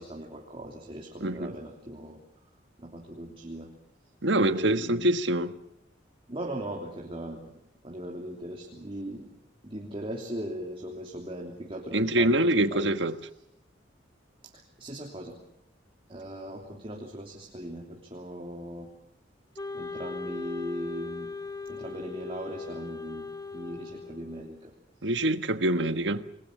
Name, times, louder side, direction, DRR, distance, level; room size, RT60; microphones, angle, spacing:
voice 1, 0.0-2.5 2.8-3.7 4.4-5.1 6.3-9.3 9.6-13.0 14.4-15.4 16.1-18.9 19.7-21.4 21.6-24.7 25.0-25.2 25.9-26.1, right 1 dB, 30° right, 3.1 m, -39 dB
voice 2, 1.2-1.5 4.2-5.5 11.9-13.1 25.0-26.3, right 1 dB, 75° right, 1.4 m, -25 dB
Wind instrument woodwind instrument, 19.6-24.7, left 4 dB, 20° left, 1.3 m, -39 dB
28.5 x 21.0 x 6.6 m
head